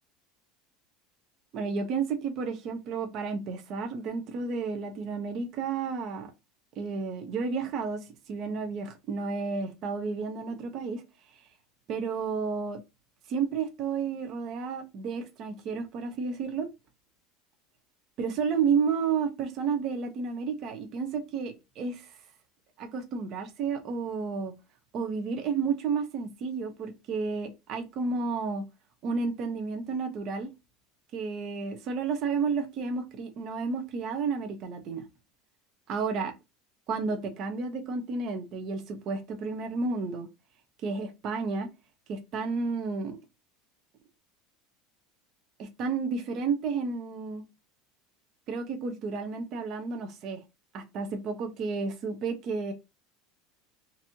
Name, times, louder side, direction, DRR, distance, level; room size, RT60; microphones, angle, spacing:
voice 1, 1.5-6.3 6.8-8.0 8.3-11.0 11.9-12.8 13.3-16.7 18.2-22.1 22.8-24.5 24.9-28.6 29.0-30.5 31.1-35.1 35.9-36.3 36.9-40.3 40.8-41.7 42.1-43.2 45.6-47.4 48.5-50.4 50.7-52.7, right 5 dB, 40° right, 0.9 m, -31 dB
4.0 x 2.8 x 2.8 m
cardioid pair, 160°, 0 cm